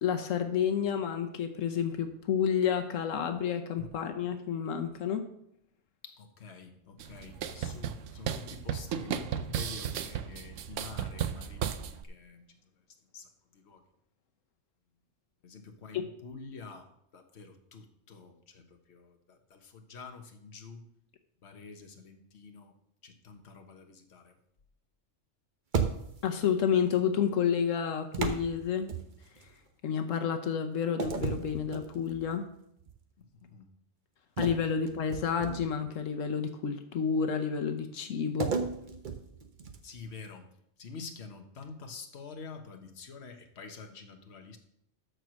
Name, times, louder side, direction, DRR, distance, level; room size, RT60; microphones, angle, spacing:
voice 1, 0.0-5.2 15.9-16.0 26.2-28.9 29.4-29.5 29.8-32.5 34.4-38.6, left 7 dB, 90° left, 6 dB, 1.2 m, -30 dB
voice 2, 6.0-12.6 13.1-13.8 15.4-20.9 21.4-22.7 23.0-24.4 33.2-33.7 39.8-44.6, left 4 dB, 60° left, 5 dB, 1.4 m, -48 dB
sound 1, 7.0-12.0, right 9 dB, 80° right, 1.0 m, -35 dB
sound 2, 25.7-26.4 28.1-29.5 31.0-32.3 32.8-33.0 34.4-35.9 38.4-40.0, right 5 dB, 45° right, 1.0 m, -34 dB
13.0 x 4.6 x 6.3 m, 0.73 s
omnidirectional pair, 1.3 m